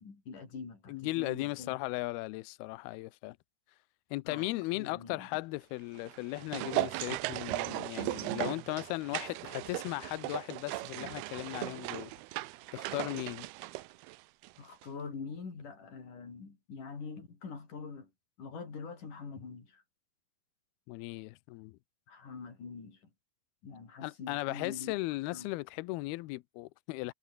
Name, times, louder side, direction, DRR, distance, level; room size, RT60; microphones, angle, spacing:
voice 1, 0.0-1.8 4.3-5.3 14.6-18.1 18.4-19.8 22.1-23.0 23.6-24.9 25.3-25.5, left 5 dB, 45° left, 6.6 m, -44 dB
voice 2, 0.9-3.4 4.1-12.1 12.7-13.5 20.9-21.8 24.0-27.1, left 21 dB, 85° left, 2.2 m, -37 dB
sound 1, 5.9-14.6 14.8-14.9, right 20 dB, 85° right, 2.2 m, -37 dB
omnidirectional pair, 5.3 m